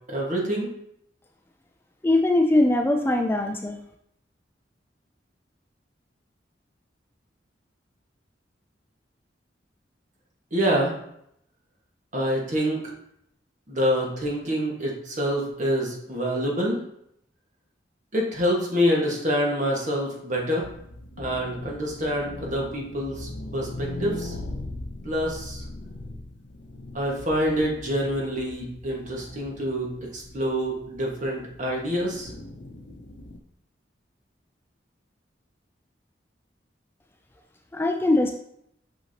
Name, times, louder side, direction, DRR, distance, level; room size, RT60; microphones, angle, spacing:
voice 1, 0.1-0.7 10.5-10.9 12.1-12.8 13.7-16.8 18.1-20.6 21.2-24.3 25.0-25.6 26.9-32.3, equal, 45° right, -2 dB, 1.6 m, -26 dB
voice 2, 2.0-3.8 37.7-38.3, left 2 dB, 10° left, 3 dB, 0.3 m, -21 dB
sound 1, 20.6-33.4, left 2 dB, 85° left, 0.7 m, -40 dB
6.2 x 5.8 x 2.8 m, 0.74 s
head